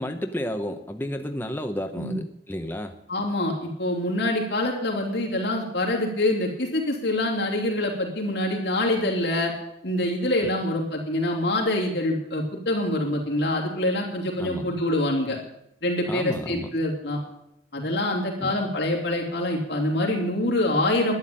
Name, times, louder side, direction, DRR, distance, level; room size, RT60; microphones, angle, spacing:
voice 1, 0.0-2.9 14.4-14.7 16.1-16.7 18.4-18.6, equal, 10° left, 5 dB, 0.8 m, -31 dB
voice 2, 3.1-9.5 9.8-15.4 15.8-17.2 17.7-21.1, left 1 dB, 65° left, -1 dB, 2.9 m, -25 dB
12.0 x 10.5 x 8.7 m, 0.81 s
head